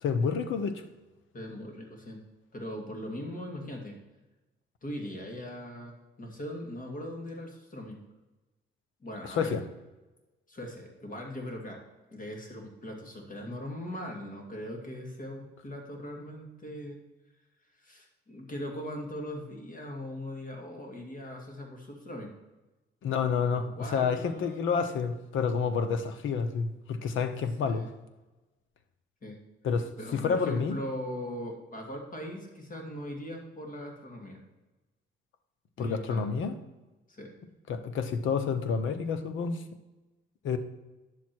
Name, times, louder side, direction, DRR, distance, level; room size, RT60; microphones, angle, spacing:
voice 1, 0.0-0.8 9.4-9.6 23.0-27.9 29.6-30.8 35.8-36.5 37.7-39.6 40.4-40.6, left 5 dB, 80° left, 10 dB, 1.0 m, -29 dB
voice 2, 1.3-2.2 2.5-4.0 4.8-8.0 9.0-9.5 10.5-17.0 17.8-22.3 23.5-24.7 27.6-27.9 29.2-29.4 30.0-34.4 35.8-36.3 37.1-37.3, equal, 45° left, 2 dB, 2.6 m, -40 dB
10.0 x 7.3 x 4.6 m, 1.1 s
cardioid pair, 90°, 20 cm